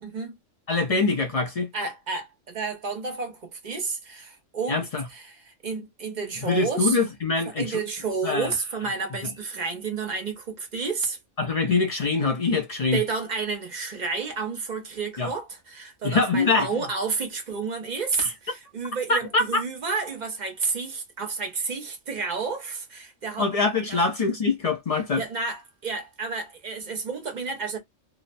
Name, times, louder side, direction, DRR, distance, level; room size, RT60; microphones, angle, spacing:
voice 1, 0.0-0.3 1.7-4.8 5.1-7.0 7.5-11.2 12.9-23.5 23.9-24.0 25.1-27.8, right 4 dB, 45° right, 0.7 m, -31 dB
voice 2, 0.7-1.7 4.7-5.0 6.4-7.8 8.2-8.5 11.4-13.0 15.2-15.3 16.0-16.7 18.2-18.3 19.1-19.6 23.4-25.2, left 3 dB, 60° left, 0.4 m, -24 dB
2.9 x 2.0 x 2.5 m
omnidirectional pair, 1.3 m